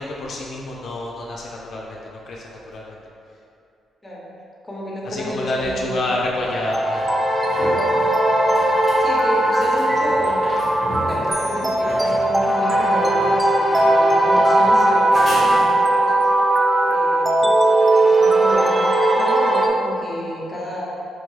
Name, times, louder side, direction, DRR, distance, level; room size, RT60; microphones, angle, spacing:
voice 1, 0.0-3.0 5.0-7.1, left 2 dB, 60° left, -3 dB, 0.4 m, -28 dB
voice 2, 4.6-6.0 6.4-6.6 8.4-8.7 9.0-16.3 16.8-17.5 18.0-20.9, equal, 10° left, -5 dB, 0.8 m, -31 dB
sound 1, 5.6-5.7 7.0-16.1 19.5-19.6, right 1 dB, 50° right, 1.1 m, -35 dB
sound 2, 6.5-19.7, right 1 dB, 15° right, 0.4 m, -18 dB
sound 3, 11.3-13.1, right 3 dB, 85° right, 0.7 m, -38 dB
4.5 x 2.2 x 3.1 m, 2.6 s
cardioid pair, 90°, 0 cm